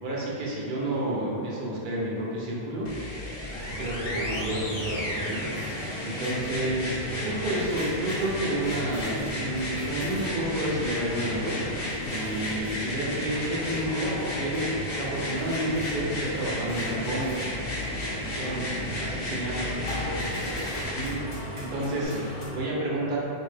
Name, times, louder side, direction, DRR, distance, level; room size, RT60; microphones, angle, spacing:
voice 1, 0.0-2.9 3.8-11.5 12.0-14.7 15.0-17.4 18.4-18.6 19.0-19.6 20.2-20.3 20.9-21.2 21.5-22.1 22.4-23.2, right 1 dB, 55° right, -4 dB, 0.8 m, -30 dB
sound 1, 2.9-21.1 22.0-22.1, left 1 dB, 70° left, 1.0 m, -34 dB
sound 2, 3.5-22.5, equal, 40° left, 0.7 m, -37 dB
voice 2, 18.5-19.1 19.5-21.0 22.0-22.3, left 1 dB, 25° right, -8 dB, 0.7 m, -43 dB
3.2 x 2.6 x 3.2 m, 2.5 s
omnidirectional pair, 1.0 m